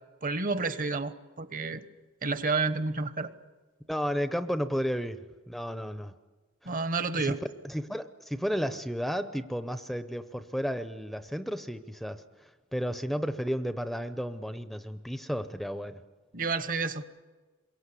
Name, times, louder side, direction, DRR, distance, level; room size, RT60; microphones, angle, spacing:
voice 1, 0.2-1.8 2.2-3.3 6.6-7.4 16.3-17.0, right 3 dB, 45° right, 12 dB, 1.2 m, -30 dB
voice 2, 3.9-6.1 7.2-7.4 7.6-12.2 12.7-16.0, equal, ahead, 10 dB, 0.7 m, -33 dB
27.5 x 23.0 x 8.3 m, 1.3 s
head